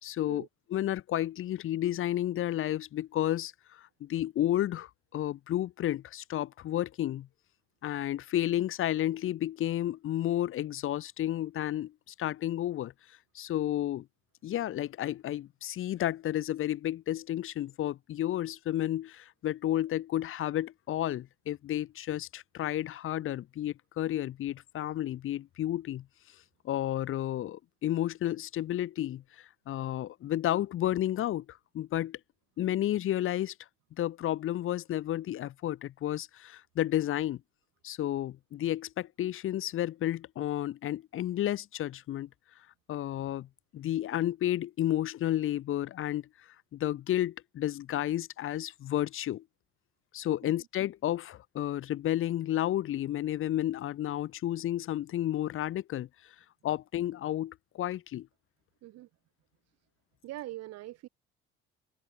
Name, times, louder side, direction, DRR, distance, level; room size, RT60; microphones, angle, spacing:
voice 1, 0.0-7.3 7.8-11.9 12.2-12.9 13.3-14.1 14.4-26.1 26.6-32.2 32.6-33.5 34.0-37.4 37.8-42.3 42.9-43.5 43.7-46.3 46.7-49.4 50.1-56.1 56.6-58.3, left 13 dB, 45° left, 1.3 m, -32 dB
voice 2, 60.2-61.1, right 16 dB, 55° right, 7.4 m, -42 dB
figure-of-eight pair, 55°, 30 cm